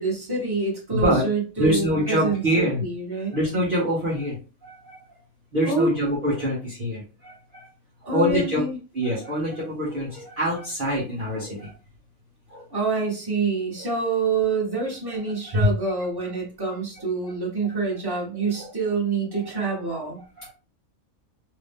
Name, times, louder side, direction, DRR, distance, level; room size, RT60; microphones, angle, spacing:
voice 1, 0.0-3.4 5.6-6.1 8.1-8.8 12.7-20.2, right 4 dB, 15° right, -4 dB, 1.3 m, -26 dB
voice 2, 0.9-1.2 1.6-2.8 3.3-4.4 4.6-5.0 5.5-7.7 8.0-8.6 8.9-11.7 12.5-12.6 15.6-15.7 18.6-18.7 19.3-19.8 20.4-20.5, equal, 40° right, -7 dB, 1.1 m, -25 dB
3.1 x 2.6 x 3.4 m, 0.34 s
omnidirectional pair, 1.5 m